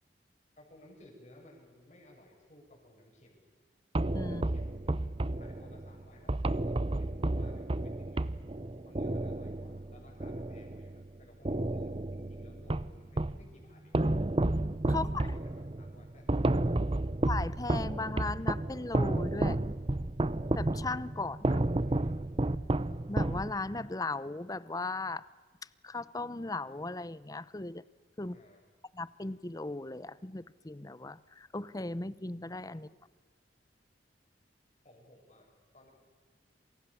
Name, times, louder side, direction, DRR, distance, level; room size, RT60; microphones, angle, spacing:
voice 1, 0.6-3.4 4.3-8.2 8.8-14.0 14.9-16.3 16.6-16.9 21.8-22.2 28.2-28.6 32.7-32.9 34.8-35.9, left 1 dB, 40° left, 0 dB, 7.9 m, -58 dB
sound 1, 3.9-11.1 11.4-13.5 13.9-23.9, right 2 dB, 30° right, 0.7 m, -31 dB
voice 2, 14.9-15.2 17.3-19.6 20.6-21.6 23.1-25.3 25.8-27.8 28.2-28.4 28.9-32.9, left 2 dB, 20° left, 18 dB, 0.7 m, -37 dB
27.5 x 27.5 x 7.1 m, 1.5 s
head